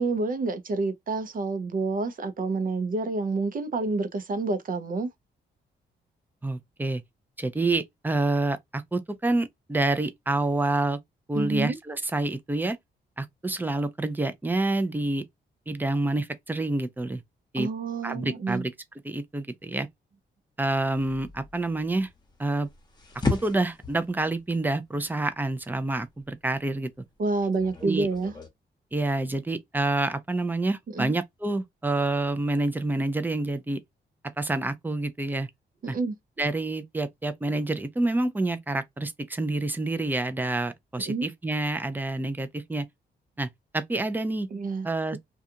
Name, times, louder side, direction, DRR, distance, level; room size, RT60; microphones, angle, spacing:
voice 1, 0.0-5.1 11.3-11.8 17.6-18.6 27.2-28.3 30.9-31.1 35.8-36.1 41.1-41.3 44.5-44.9, right 3 dB, 50° right, 0.7 m, -28 dB
voice 2, 6.4-7.0 7.4-11.0 11.3-12.8 13.2-15.2 15.7-17.2 17.5-17.7 18.0-18.7 19.0-19.9 20.6-22.1 22.4-22.7 23.3-26.9 27.8-28.1 28.9-33.8 34.4-35.5 35.9-36.0 36.4-42.9 43.4-44.5 44.8-45.2, right 2 dB, 10° right, 0.5 m, -28 dB
sound 1, 20.9-28.5, left 3 dB, 25° left, 0.9 m, -36 dB
2.4 x 2.3 x 2.7 m
cardioid pair, 85°, 18 cm